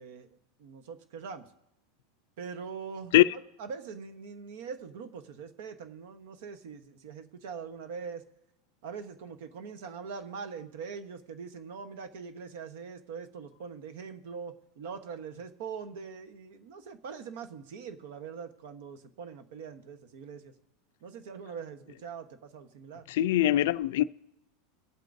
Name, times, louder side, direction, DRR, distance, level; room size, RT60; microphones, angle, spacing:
voice 1, 0.0-1.5 2.4-8.2 8.8-20.5 21.0-23.1, right 6 dB, 65° right, 1.1 m, -42 dB
voice 2, 23.1-24.0, left 14 dB, 65° left, 0.4 m, -22 dB
22.5 x 8.2 x 2.7 m
supercardioid pair, 170°, 0 cm